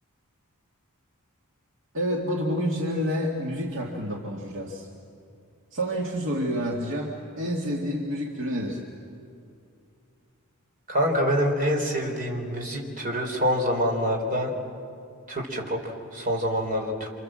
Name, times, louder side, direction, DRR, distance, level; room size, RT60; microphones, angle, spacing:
voice 1, 1.9-4.9 5.7-8.8, equal, 65° right, -1 dB, 2.2 m, -28 dB
voice 2, 10.9-14.5 15.3-17.1, equal, 40° right, 2 dB, 4.1 m, -26 dB
29.5 x 26.5 x 7.7 m, 2.5 s
head